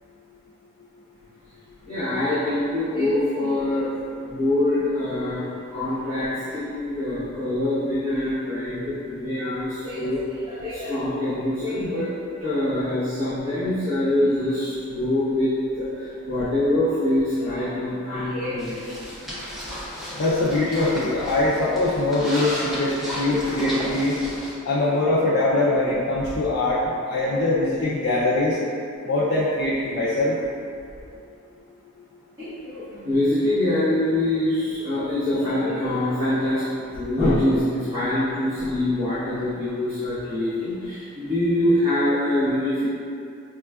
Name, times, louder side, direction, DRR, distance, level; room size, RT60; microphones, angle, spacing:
voice 1, 1.9-5.4 5.7-12.1 12.4-19.0 32.4-42.9, left 1 dB, 25° right, -17 dB, 1.0 m, -24 dB
sound 1, 18.6-24.5, equal, ahead, 0.5 m, -34 dB
voice 2, 19.3-19.7 20.2-24.1 24.6-28.6 29.0-30.4, left 2 dB, 55° left, -8 dB, 0.4 m, -22 dB
4.9 x 2.3 x 2.2 m, 2.5 s
head